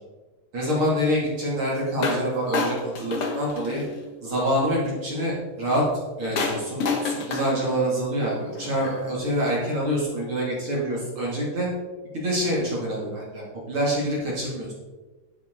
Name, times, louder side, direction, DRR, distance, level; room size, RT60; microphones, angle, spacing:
voice 1, 0.5-3.8 4.2-5.8 6.2-11.7 12.1-14.7, equal, 40° right, -5 dB, 3.0 m, -26 dB
sound 1, 2.0-2.3 2.5-4.1 6.4-9.1, left 4 dB, 55° left, 1.7 m, -29 dB
11.0 x 8.6 x 3.8 m, 1.2 s
omnidirectional pair, 4.1 m